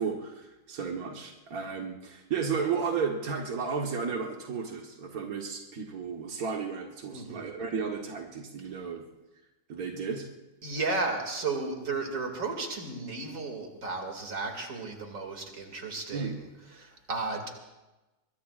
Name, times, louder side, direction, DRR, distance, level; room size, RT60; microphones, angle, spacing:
voice 1, 0.0-9.0 9.7-10.3 16.1-16.4, right 5 dB, 55° right, 1 dB, 0.9 m, -33 dB
voice 2, 7.1-7.5 10.6-16.3 16.7-17.5, right 3 dB, 30° right, 3 dB, 2.3 m, -34 dB
25.0 x 22.5 x 2.5 m, 1.0 s
omnidirectional pair, 3.4 m